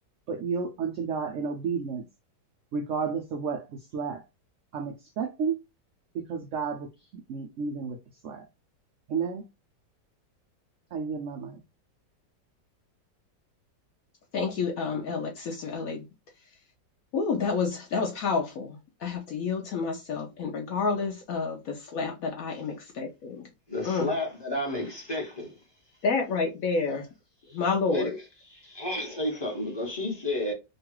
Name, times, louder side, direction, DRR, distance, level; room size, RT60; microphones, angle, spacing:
voice 1, 0.3-2.1 2.7-3.7 3.9-4.2 4.7-5.6 6.1-6.9 7.3-8.0 8.2-8.4 9.1-9.4 10.9-11.6, right 5 dB, 85° right, 0.6 m, -31 dB
voice 2, 14.3-16.0 17.1-23.5 23.8-24.1 26.0-27.1 27.5-28.2, left 4 dB, 70° left, 0.9 m, -29 dB
voice 3, 23.7-25.5 27.9-28.1 28.7-30.5, left 1 dB, 20° left, 0.8 m, -31 dB
3.0 x 2.3 x 2.9 m
omnidirectional pair, 1.9 m